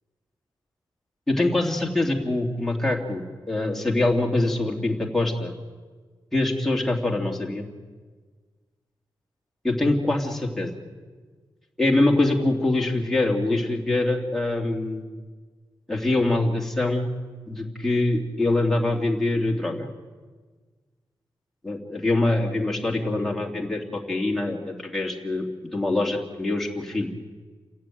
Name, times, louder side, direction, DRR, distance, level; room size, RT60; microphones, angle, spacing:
voice 1, 1.3-5.5 6.3-7.7 9.6-10.8 11.8-15.0 15.9-17.1 17.5-19.9 21.6-25.4 25.7-27.1, left 2 dB, 5° left, -1 dB, 2.8 m, -24 dB
29.0 x 15.0 x 9.3 m, 1.4 s
wide cardioid pair, 155°, 8 cm